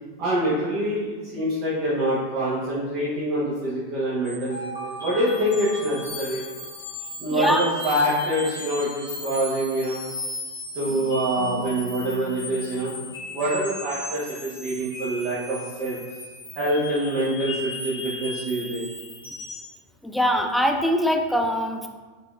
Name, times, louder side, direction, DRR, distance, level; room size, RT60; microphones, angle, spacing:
voice 1, 0.2-4.5 4.8-6.4 7.2-10.0 10.7-12.9 13.3-16.0 16.6-18.8, right 1 dB, 40° right, -9 dB, 0.9 m, -25 dB
sound 1, 4.2-19.7, left 1 dB, 75° left, 1.1 m, -36 dB
voice 2, 7.3-7.6 20.0-21.9, equal, ahead, 3 dB, 0.3 m, -22 dB
4.3 x 2.8 x 2.4 m, 1.4 s
figure-of-eight pair, 90°, 0 cm